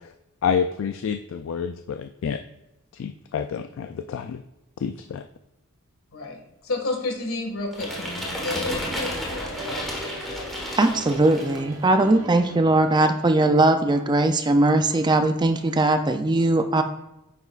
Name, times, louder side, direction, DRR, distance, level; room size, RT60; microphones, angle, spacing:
voice 1, 0.4-2.4 2.9-4.4 4.8-5.3, left 7 dB, 65° left, 8 dB, 0.3 m, -28 dB
voice 2, 6.1-10.5 11.1-11.4, left 2 dB, 85° left, 2 dB, 1.8 m, -32 dB
sound 1, 7.7-11.7, left 1 dB, ahead, 1.4 m, -32 dB
sound 2, 7.8-14.0, right 2 dB, 85° right, 1.0 m, -41 dB
voice 3, 10.8-16.8, right 2 dB, 20° right, 8 dB, 0.4 m, -20 dB
9.2 x 5.9 x 2.4 m, 0.91 s
head